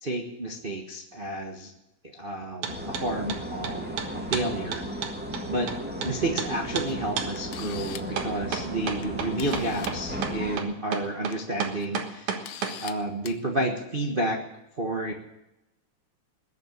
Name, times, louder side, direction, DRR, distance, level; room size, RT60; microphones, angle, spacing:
voice 1, 0.0-1.7 2.1-3.9 4.1-4.9 5.5-5.7 6.0-12.5 12.8-14.4 14.8-15.1, right 1 dB, 60° right, 1 dB, 0.5 m, -30 dB
sound 1, 2.6-3.1 3.3-6.1 6.4-6.5 6.8-6.9 7.2-7.3 8.2-12.8, right 7 dB, 75° right, 2.9 m, -31 dB
sound 2, 2.7-10.6, equal, 5° right, 1.0 m, -35 dB
Camera, 6.9-7.0 7.4-8.2 9.0-9.1 9.4-10.0 11.1-11.3 11.8-11.9 12.4-12.9 13.2-13.4, left 10 dB, 70° left, 1.5 m, -41 dB
20.5 x 6.9 x 8.9 m, 0.92 s
omnidirectional pair, 3.4 m